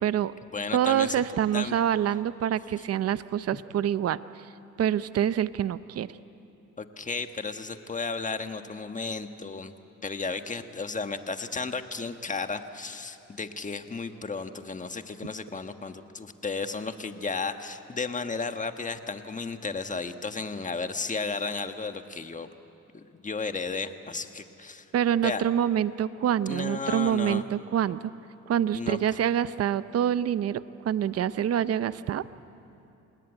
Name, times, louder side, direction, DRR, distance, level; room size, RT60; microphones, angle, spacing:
voice 1, 0.0-0.3 0.7-4.2 4.8-6.1 24.9-28.1 28.5-32.2, right 10 dB, 55° right, 15 dB, 0.7 m, -26 dB
voice 2, 0.5-1.2 1.5-1.8 6.8-9.7 10.0-22.5 22.9-24.9 25.2-25.4 26.5-27.4 28.7-29.0, left 4 dB, 25° left, 8 dB, 1.4 m, -33 dB
27.0 x 19.5 x 9.1 m, 2.8 s
cardioid pair, 90°, 30 cm